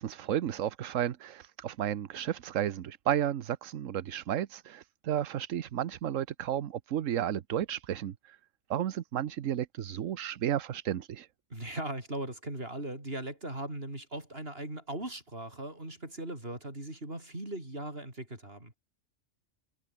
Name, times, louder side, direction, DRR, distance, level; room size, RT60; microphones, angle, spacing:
voice 1, 0.0-8.4 8.7-11.3, right 10 dB, 75° right, 1.2 m, -33 dB
voice 2, 11.5-18.8, right 1 dB, 45° right, 6.9 m, -39 dB
omnidirectional pair, 1.4 m